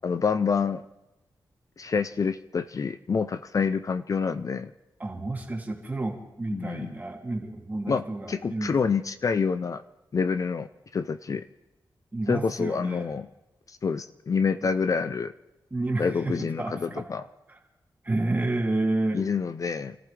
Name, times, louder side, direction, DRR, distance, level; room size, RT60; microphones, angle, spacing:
voice 1, 0.0-0.8 1.8-4.7 6.5-6.9 7.9-8.0 8.3-9.8 10.1-10.7 10.9-11.5 12.3-13.3 13.7-15.3 16.0-17.2 19.1-20.0, left 5 dB, 45° left, 12 dB, 0.5 m, -27 dB
voice 2, 5.0-8.9 12.1-13.1 15.7-17.1 17.5-17.6 18.0-19.2, right 2 dB, 20° right, 0 dB, 2.6 m, -30 dB
28.5 x 14.5 x 3.3 m, 0.96 s
wide cardioid pair, 105°, 8 cm